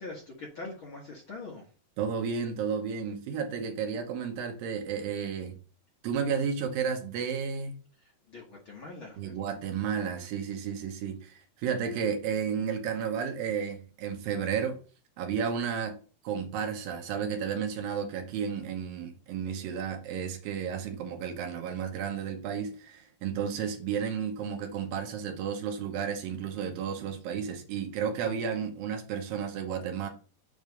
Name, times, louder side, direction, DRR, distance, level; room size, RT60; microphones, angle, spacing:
voice 1, 0.0-1.7 8.0-9.3, left 3 dB, 55° left, 1.5 m, -43 dB
voice 2, 2.0-5.5 6.0-7.7 9.2-14.8 15.2-16.0 16.2-30.1, right 7 dB, 80° right, 2.8 m, -32 dB
7.8 x 3.3 x 5.2 m
omnidirectional pair, 4.1 m